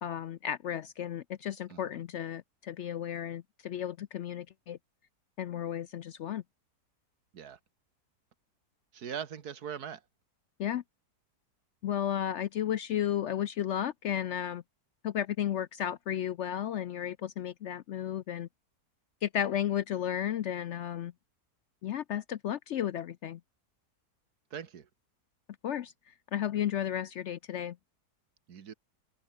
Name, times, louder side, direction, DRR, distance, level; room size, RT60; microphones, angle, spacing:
voice 1, 0.0-4.8 5.4-6.4 10.6-10.8 11.8-14.6 15.0-18.5 19.2-21.1 21.8-23.4 25.6-27.8, left 10 dB, 70° left, 0.6 m, -33 dB
voice 2, 8.9-10.0 24.5-24.9 28.5-28.7, right 8 dB, 65° right, 1.9 m, -41 dB
omnidirectional pair, 1.8 m